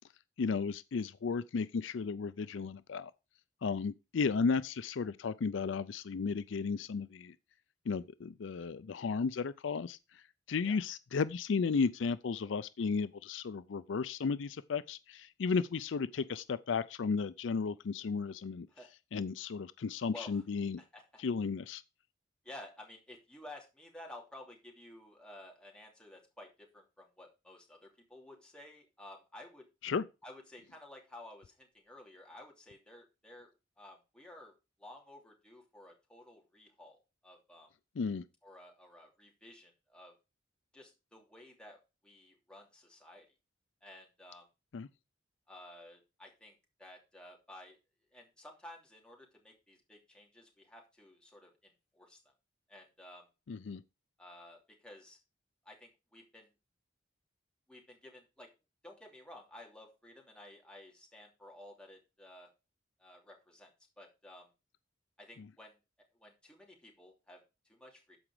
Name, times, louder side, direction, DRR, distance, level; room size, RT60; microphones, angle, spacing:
voice 1, 0.4-3.1 3.6-7.3 7.9-10.0 10.5-18.7 19.1-20.8 21.2-21.8 29.8-30.0 38.0-38.2 44.7-44.9 53.5-53.8, left 5 dB, 70° left, 0.4 m, -34 dB
voice 2, 20.1-20.4 20.8-21.2 22.4-29.7 30.2-33.5 33.8-34.5 34.8-37.7 38.4-40.1 40.7-43.2 43.8-44.4 45.5-47.8 48.1-52.2 52.7-53.3 54.2-55.2 55.6-56.5 57.7-58.5 58.8-62.5 63.0-63.7 64.0-64.5 65.2-65.8 66.2-68.2, left 1 dB, 5° left, 2.8 m, -53 dB
13.5 x 5.1 x 4.8 m
head